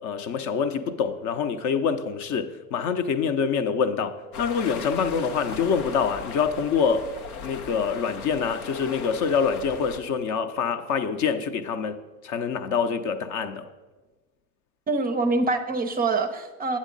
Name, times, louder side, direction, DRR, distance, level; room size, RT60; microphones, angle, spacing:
voice 1, 0.0-7.1 7.4-12.0 12.2-13.7, left 6 dB, 45° left, 0.6 m, -26 dB
sound 1, 4.3-10.0, left 5 dB, 90° left, 0.7 m, -38 dB
voice 2, 14.9-16.8, right 3 dB, 20° right, 0.5 m, -25 dB
8.0 x 7.3 x 3.9 m
hypercardioid pair, 80°, 43 cm